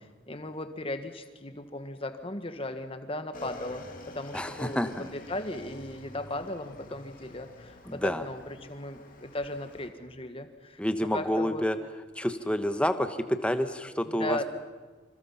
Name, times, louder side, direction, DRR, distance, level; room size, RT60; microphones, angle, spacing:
voice 1, 0.3-10.8 11.1-11.7 14.1-14.4, left 1 dB, 30° left, 8 dB, 1.6 m, -37 dB
Motorcycle / Engine, 3.3-9.9, left 1 dB, 45° left, 3.0 m, -48 dB
voice 2, 4.3-5.1 7.8-8.2 10.8-11.8 12.1-14.4, equal, 5° left, 8 dB, 1.2 m, -28 dB
27.5 x 26.0 x 5.7 m, 1.4 s
head